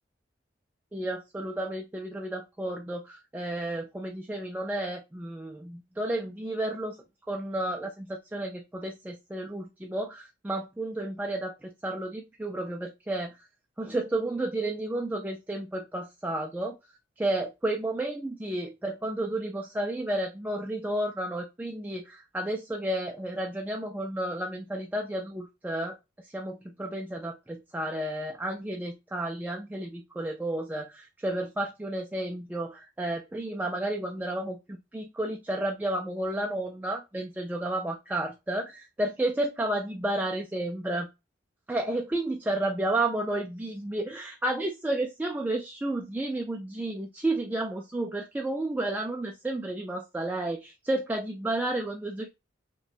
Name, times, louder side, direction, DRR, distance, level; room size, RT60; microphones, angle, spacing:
voice 1, 0.9-7.0 7.3-13.3 13.8-16.8 17.2-26.0 26.2-41.1 41.7-52.3, right 1 dB, 10° right, 3 dB, 0.3 m, -32 dB
5.6 x 2.2 x 2.4 m, 0.25 s
head